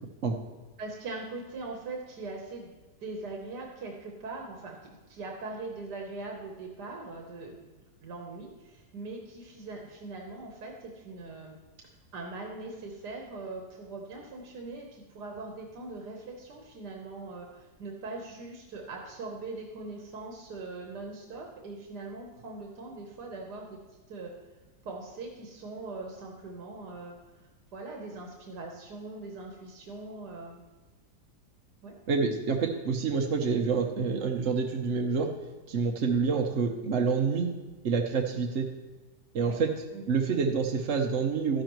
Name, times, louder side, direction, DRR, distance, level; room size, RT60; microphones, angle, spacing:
voice 1, 0.8-2.7 3.0-4.8 5.1-11.6 12.1-23.8 24.1-24.3 24.9-27.1 27.7-30.6 31.8-32.0 39.4-39.6 39.9-40.1, right 3 dB, 90° right, 0 dB, 1.7 m, -41 dB
voice 2, 32.1-35.3 35.7-37.5 37.8-38.7 39.3-39.7 40.1-41.6, right 5 dB, 55° right, 2 dB, 1.1 m, -27 dB
12.5 x 10.5 x 3.1 m, 1.2 s
omnidirectional pair, 1.7 m